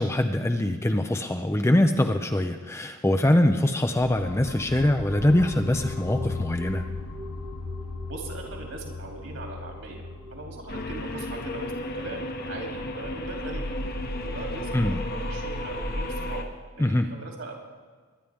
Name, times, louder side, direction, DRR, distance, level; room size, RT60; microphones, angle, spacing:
voice 1, 0.0-6.8 14.7-15.0 16.8-17.1, left 1 dB, 10° left, 6 dB, 0.5 m, -23 dB
sound 1, 4.0-15.9, left 4 dB, 75° left, 0.6 m, -39 dB
sound 2, 4.9-12.3, right 1 dB, 25° right, 0.7 m, -45 dB
voice 2, 8.0-10.0 10.3-13.7 14.2-16.5 16.9-17.5, right 2 dB, 65° right, 0 dB, 2.9 m, -40 dB
sound 3, 10.7-16.4, left 1 dB, 45° left, 1.1 m, -32 dB
22.0 x 10.0 x 3.5 m, 1.5 s
head